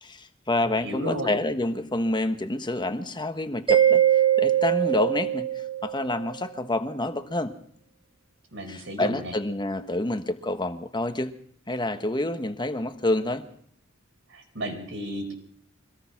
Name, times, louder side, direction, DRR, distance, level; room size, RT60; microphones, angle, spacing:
voice 1, 0.0-5.5 5.8-7.5 8.7-11.3 11.7-13.5, left 2 dB, 25° left, 8 dB, 1.4 m, -28 dB
voice 2, 0.6-1.4 8.5-9.3 14.3-15.3, right 1 dB, 70° right, 4 dB, 5.4 m, -33 dB
Mallet percussion, 3.7-6.2, right 10 dB, 25° right, 1.3 m, -22 dB
24.5 x 18.5 x 6.0 m, 0.66 s
head